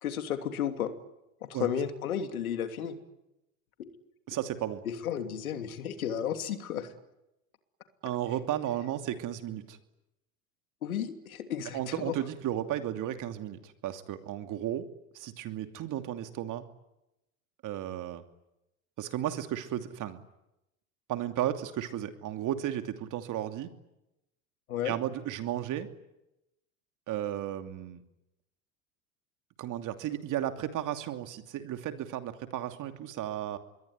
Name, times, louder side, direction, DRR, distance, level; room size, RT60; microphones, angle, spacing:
voice 1, 0.0-0.9 1.4-3.0 5.0-6.9 10.8-12.1 24.7-24.9, left 9 dB, 90° left, 7 dB, 3.0 m, -33 dB
voice 2, 4.3-4.8 8.0-9.8 11.7-14.9 15.1-16.7 17.6-18.2 19.0-20.2 21.1-23.7 24.8-25.9 27.1-28.0 29.6-33.6, right 11 dB, 45° right, 7 dB, 2.8 m, -34 dB
26.5 x 22.0 x 9.7 m, 0.90 s
hypercardioid pair, 95°, 41 cm